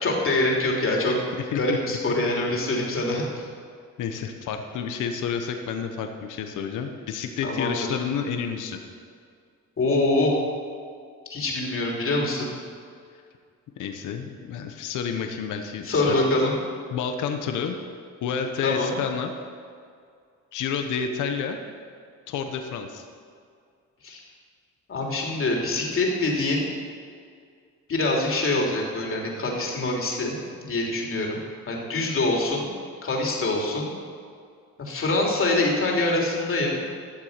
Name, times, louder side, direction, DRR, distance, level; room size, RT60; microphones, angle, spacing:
voice 1, 0.0-1.2 1.5-3.2 7.4-7.7 9.8-10.4 11.3-12.5 15.8-16.5 18.6-18.9 24.0-24.2 24.9-26.6 27.9-31.4 31.7-32.7 33.0-33.9 34.8-36.7, left 2 dB, 45° left, -1 dB, 3.1 m, -24 dB
voice 2, 1.4-2.0 4.0-8.8 13.8-16.2 16.9-17.8 18.2-19.3 20.5-21.6 22.3-23.0, left 6 dB, 80° left, 5 dB, 1.1 m, -30 dB
13.0 x 7.4 x 6.7 m, 2.2 s
cardioid pair, 90°, 30 cm